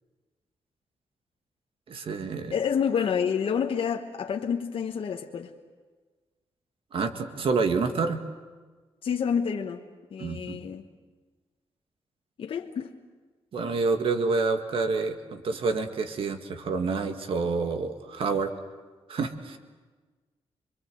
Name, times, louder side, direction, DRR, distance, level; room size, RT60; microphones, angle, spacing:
voice 1, 1.9-2.5 6.9-8.2 10.2-10.6 13.5-18.5 19.1-19.6, right 4 dB, 60° right, 1.9 m, -28 dB
voice 2, 2.5-5.5 9.0-9.8 10.1-10.9 12.4-12.9, left 7 dB, 60° left, 1.2 m, -28 dB
26.5 x 23.0 x 7.8 m
wide cardioid pair, 160°, 10 cm